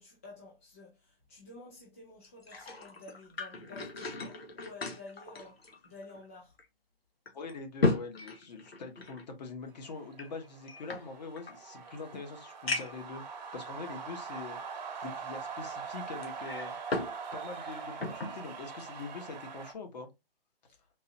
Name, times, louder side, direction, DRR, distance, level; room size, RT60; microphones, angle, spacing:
voice 1, 0.0-6.6 20.7-20.8, left 2 dB, 15° left, 0.3 m, -51 dB
sound 1, 2.2-6.2 6.6-6.7 7.3-9.2 10.1-11.6 12.1-12.2 12.7-13.1 13.8-13.9 16.2-17.2 17.5-18.4 18.8-19.0, left 3 dB, 85° left, 1.1 m, -36 dB
voice 2, 7.3-13.3 13.5-14.6 15.0-16.7 17.3-20.1, left 4 dB, 45° left, 1.2 m, -43 dB
sound 2, 9.8-19.7, right 5 dB, 45° right, 0.9 m, -43 dB
3.8 x 2.5 x 2.7 m
figure-of-eight pair, 140°, 30 cm